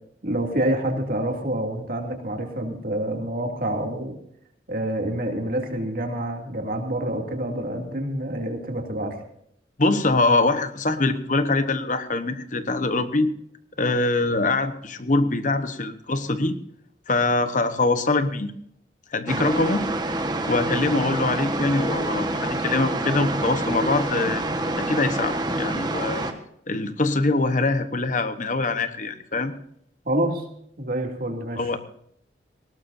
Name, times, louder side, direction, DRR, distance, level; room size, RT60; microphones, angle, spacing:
voice 1, 0.2-4.1 4.7-9.2 30.0-30.4 30.8-31.6, right 1 dB, 50° right, 2 dB, 2.7 m, -27 dB
voice 2, 9.8-13.3 13.8-16.6 17.1-18.5 19.1-19.9 20.5-24.4 24.8-26.2 26.7-29.5 31.6-31.8, left 2 dB, 45° left, 10 dB, 1.1 m, -23 dB
sound 1, 19.3-26.3, right 2 dB, 25° right, 1.4 m, -27 dB
20.0 x 18.0 x 2.7 m, 0.70 s
head